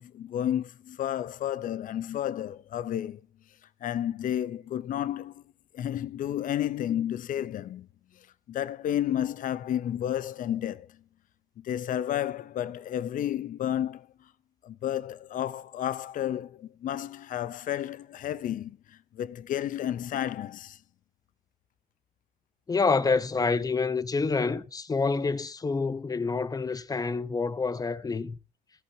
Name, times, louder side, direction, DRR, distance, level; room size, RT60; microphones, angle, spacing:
voice 1, 0.0-3.3 3.8-5.4 5.7-7.9 8.2-11.0 11.6-14.3 14.6-20.8, left 11 dB, 50° left, 0.7 m, -32 dB
voice 2, 22.7-28.4, left 4 dB, 20° left, 0.9 m, -27 dB
16.5 x 13.5 x 2.8 m
cardioid pair, 110°, 17 cm